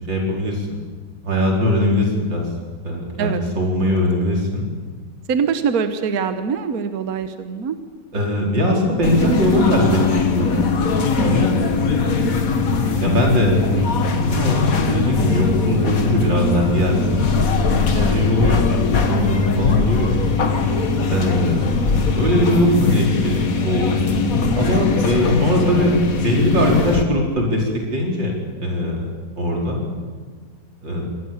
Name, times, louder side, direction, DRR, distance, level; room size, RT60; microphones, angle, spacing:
voice 1, 0.1-0.7 1.2-2.5 2.8-4.7 8.1-10.7 11.2-12.2 12.7-17.4 18.1-18.6 19.1-20.2 21.1-21.8 22.1-24.1 24.5-28.3 28.6-29.1 29.4-29.8 30.8-31.1, left 1 dB, 90° right, 0 dB, 5.1 m, -20 dB
voice 2, 5.3-7.8 11.2-11.5 17.9-18.2, right 6 dB, 55° right, 9 dB, 1.4 m, -23 dB
sound 1, 9.0-27.0, left 4 dB, 50° left, 1.8 m, -20 dB
24.5 x 18.5 x 7.2 m, 1.5 s
omnidirectional pair, 1.9 m